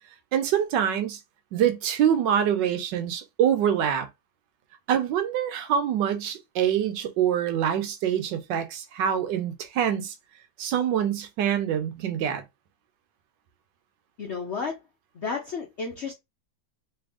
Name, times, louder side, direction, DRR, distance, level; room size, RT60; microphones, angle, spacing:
voice 1, 0.3-1.2 1.5-4.1 4.9-10.1 10.6-12.4, right 9 dB, 75° right, 1.3 m, -25 dB
voice 2, 14.2-14.8 15.1-16.1, left 5 dB, 65° left, 0.6 m, -32 dB
3.4 x 2.8 x 3.5 m
omnidirectional pair, 2.0 m